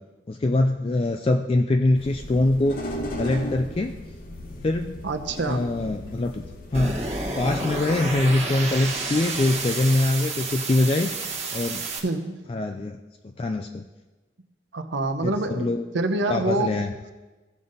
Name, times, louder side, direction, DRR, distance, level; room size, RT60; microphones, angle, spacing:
voice 1, 0.3-2.8 3.2-4.0 4.6-5.0 5.5-6.4 6.7-7.1 7.4-11.1 11.5-11.9 12.5-13.0 13.4-13.8 15.2-15.8 16.3-16.9, left 2 dB, 30° left, 5 dB, 0.3 m, -23 dB
sound 1, 1.9-7.3, left 1 dB, 45° left, 0.9 m, -36 dB
voice 2, 5.0-5.7 11.9-12.4 14.7-16.7, right 2 dB, 80° right, 7 dB, 0.8 m, -26 dB
sound 2, 6.7-12.0, right 3 dB, 35° right, 1.1 m, -30 dB
16.0 x 5.5 x 3.9 m, 1.2 s
head